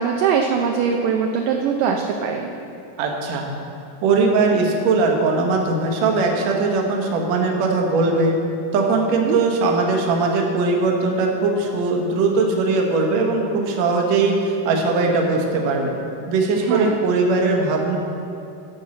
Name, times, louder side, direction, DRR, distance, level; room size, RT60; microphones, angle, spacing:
voice 1, 0.0-2.5 9.2-9.4 16.7-17.0, right 6 dB, 80° right, 2 dB, 2.1 m, -21 dB
voice 2, 3.0-3.5 4.0-8.4 8.7-15.9 16.3-18.0, right 3 dB, 65° right, 1 dB, 1.9 m, -20 dB
11.5 x 5.5 x 6.9 m, 2.8 s
omnidirectional pair, 4.3 m